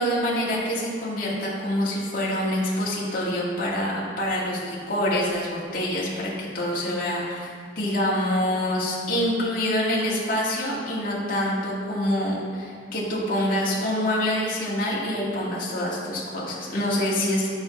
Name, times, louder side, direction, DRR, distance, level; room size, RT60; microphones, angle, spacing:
voice 1, 0.0-7.5 7.8-17.5, left 1 dB, 50° left, -6 dB, 2.1 m, -26 dB
12.5 x 5.7 x 3.2 m, 2.2 s
head